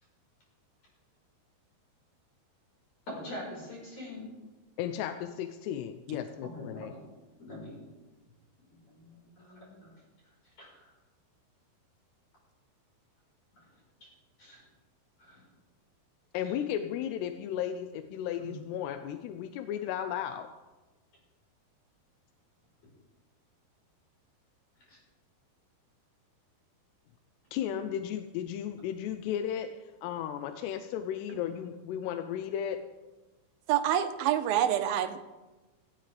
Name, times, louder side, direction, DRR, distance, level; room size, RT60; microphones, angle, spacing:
voice 1, 3.1-4.3 6.4-7.1 7.4-7.8 8.7-9.9 10.6-10.9 13.5-13.7 14.4-14.6 15.2-15.4 16.4-16.5 18.4-18.5 24.9-25.0, left 1 dB, 40° left, -5 dB, 5.7 m, -44 dB
voice 2, 4.8-6.9 16.3-20.5 27.5-32.8, left 10 dB, 90° left, 8 dB, 2.8 m, -35 dB
voice 3, 33.7-35.2, right 11 dB, 75° right, 7 dB, 2.4 m, -27 dB
16.5 x 16.0 x 3.4 m, 1.2 s
omnidirectional pair, 4.7 m